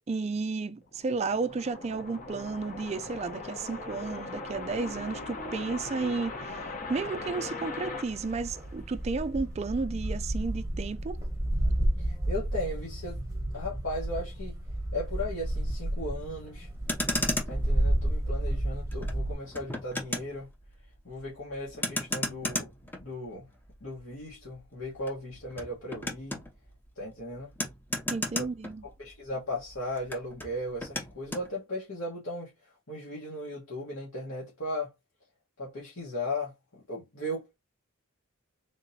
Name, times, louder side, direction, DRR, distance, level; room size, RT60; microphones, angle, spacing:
voice 1, 0.1-11.2 28.1-28.8, right 4 dB, 30° right, 0.3 m, -33 dB
sound 1, 0.8-9.2, left 3 dB, 40° left, 0.9 m, -40 dB
sound 2, 8.1-19.3, right 1 dB, 15° right, 1.0 m, -31 dB
voice 2, 12.0-13.2 13.5-14.6 14.9-16.7 17.4-20.5 21.0-23.5 23.8-26.4 27.0-27.5 28.4-28.5 28.8-32.5 32.9-34.9 35.6-37.6, left 1 dB, 70° left, 1.4 m, -37 dB
Motor vehicle (road), 16.7-29.3 29.6-31.5, left 1 dB, 10° left, 0.6 m, -36 dB
3.6 x 2.9 x 2.7 m
head